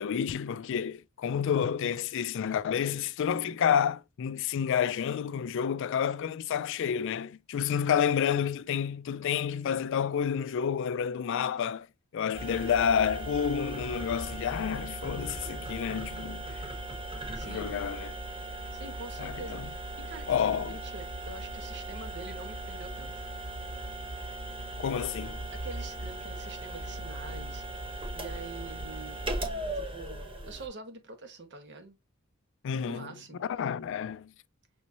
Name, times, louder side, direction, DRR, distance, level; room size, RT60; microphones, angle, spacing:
voice 1, 0.0-11.9 12.1-16.6 17.4-18.1 19.2-19.7 20.3-20.8 24.8-25.4 32.6-33.1 33.4-34.3, left 8 dB, 60° left, 0.3 m, -29 dB
sound 1, 12.3-30.7, right 2 dB, 25° right, 1.0 m, -38 dB
voice 2, 17.3-17.8 18.7-23.2 25.5-27.7 28.1-29.2 29.7-32.0 32.8-33.4, right 3 dB, 55° right, 1.1 m, -45 dB
6.3 x 3.0 x 2.6 m
head